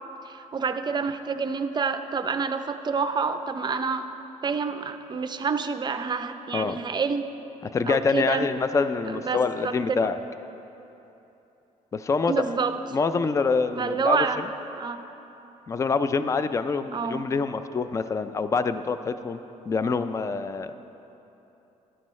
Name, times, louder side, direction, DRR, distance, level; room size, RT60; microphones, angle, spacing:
voice 1, 0.3-4.1 4.4-7.3 7.9-8.5 9.1-10.2 12.3-12.8 13.8-14.4 14.8-15.0 16.9-17.3, right 5 dB, 30° right, 9 dB, 0.5 m, -28 dB
voice 2, 7.7-10.2 11.9-12.6 12.9-14.2 15.7-19.4 19.7-20.7, left 4 dB, 20° left, 11 dB, 0.4 m, -26 dB
12.5 x 11.5 x 3.1 m, 3.0 s
cardioid pair, 105°, 14 cm